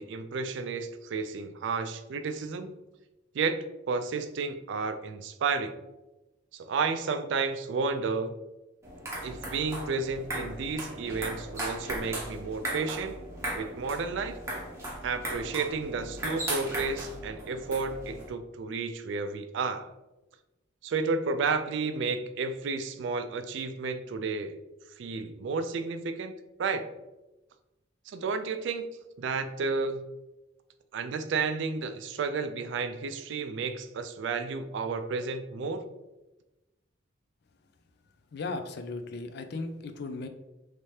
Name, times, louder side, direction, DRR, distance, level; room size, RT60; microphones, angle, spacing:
voice 1, 0.0-2.7 3.3-3.6 3.9-5.8 6.5-8.3 9.2-13.2 13.5-14.4 15.0-19.9 20.8-24.6 25.0-26.9 28.1-28.9 29.2-30.0 30.9-35.8, right 4 dB, 65° right, 9 dB, 0.3 m, -32 dB
sound 1, 8.8-18.3, right 1 dB, 15° right, 0.7 m, -37 dB
voice 2, 38.3-40.3, left 3 dB, 55° left, 8 dB, 0.4 m, -36 dB
3.2 x 2.8 x 3.1 m, 1.0 s
head